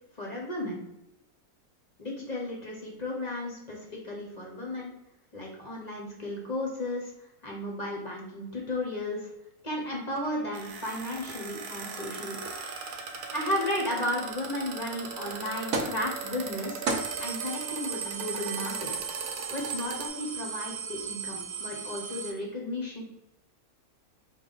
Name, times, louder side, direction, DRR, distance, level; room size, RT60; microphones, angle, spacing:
voice 1, 0.2-0.8 2.0-4.9 5.3-7.1 7.4-9.3 9.6-12.4 13.3-16.8 17.2-19.1 19.5-23.0, left 1 dB, 40° left, -2 dB, 0.7 m, -34 dB
sound 1, 10.1-20.1, right 5 dB, 85° right, 1.2 m, -39 dB
sound 2, 15.7-16.0 16.4-16.5 16.9-22.3, right 5 dB, 65° right, 1.0 m, -34 dB
4.8 x 2.2 x 3.9 m, 0.91 s
omnidirectional pair, 1.6 m